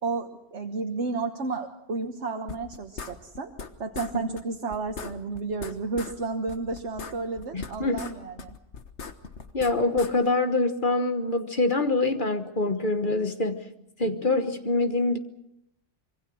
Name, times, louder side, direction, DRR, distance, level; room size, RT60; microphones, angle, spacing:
voice 1, 0.0-3.5 3.8-8.5, right 3 dB, 70° right, 4 dB, 1.6 m, -32 dB
sound 1, 2.5-3.7 3.9-4.1 4.4-4.5 4.7-6.2 6.5-8.1 8.4-10.1, left 5 dB, 65° left, 1.7 m, -39 dB
voice 2, 7.5-8.1 9.5-13.6 14.0-15.2, left 2 dB, 45° left, 8 dB, 1.5 m, -25 dB
25.5 x 23.0 x 6.3 m, 0.79 s
omnidirectional pair, 1.3 m